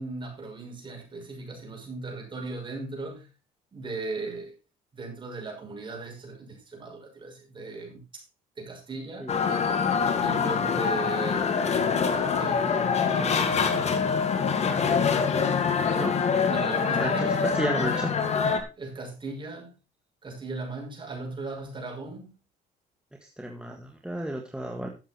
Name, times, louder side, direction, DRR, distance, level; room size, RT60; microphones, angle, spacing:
voice 1, 0.0-3.3 3.7-4.5 4.9-8.2 8.6-9.3 10.2-11.6 12.4-14.0 15.9-16.2 16.5-17.4 18.8-19.7 20.2-22.3, right 3 dB, 30° right, 6.0 m, -37 dB
sound 1, 9.3-18.6, left 6 dB, 40° left, 2.2 m, -25 dB
voice 2, 14.8-15.1 15.9-16.1 16.9-18.1 23.2-24.9, right 1 dB, 5° right, 1.8 m, -33 dB
13.0 x 7.3 x 4.5 m
cardioid pair, 110°, 17 cm